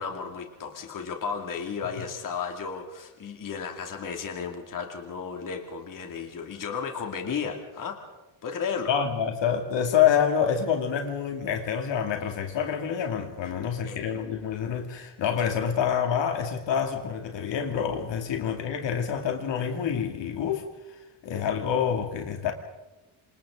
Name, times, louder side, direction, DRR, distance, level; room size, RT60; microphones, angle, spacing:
voice 1, 0.0-8.0 8.4-8.9 13.8-14.0, left 6 dB, 40° left, 3 dB, 2.5 m, -34 dB
voice 2, 8.9-20.6 21.2-22.5, left 8 dB, 60° left, 4 dB, 2.6 m, -27 dB
28.0 x 27.0 x 3.8 m, 1.1 s
cardioid pair, 175°, 49 cm